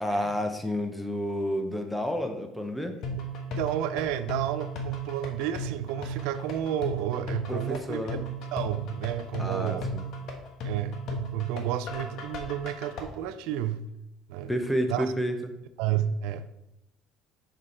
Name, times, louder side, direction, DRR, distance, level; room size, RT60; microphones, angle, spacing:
voice 1, 0.0-3.0 7.5-8.2 9.4-10.0 14.5-15.3, equal, 5° left, 6 dB, 0.7 m, -30 dB
sound 1, 3.0-13.0, right 1 dB, 55° left, 1.1 m, -35 dB
voice 2, 3.5-8.2 8.5-9.9 10.6-13.9 14.3-14.5 14.9-15.1 15.8-16.5, right 10 dB, 75° right, 12 dB, 0.4 m, -31 dB
6.5 x 5.1 x 4.3 m, 0.86 s
cardioid pair, 155°, 0 cm